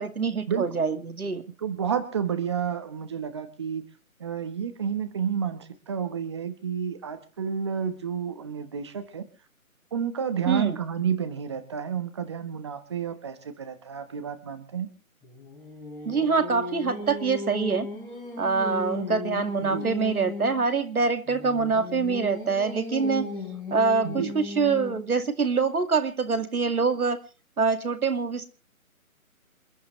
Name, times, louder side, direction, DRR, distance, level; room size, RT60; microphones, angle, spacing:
voice 1, 0.0-1.4 10.5-10.8 16.1-17.9 18.4-23.3 23.7-27.2 27.6-28.5, right 4 dB, 85° right, 9 dB, 2.3 m, -25 dB
voice 2, 1.6-3.8 4.2-9.2 9.9-14.9 19.6-19.9 24.0-24.3, right 7 dB, 20° right, 10 dB, 1.1 m, -30 dB
Singing, 15.2-20.6 21.3-25.1, left 2 dB, 5° left, 4.9 m, -36 dB
27.5 x 11.0 x 3.1 m, 0.34 s
hypercardioid pair, 165°, 43 cm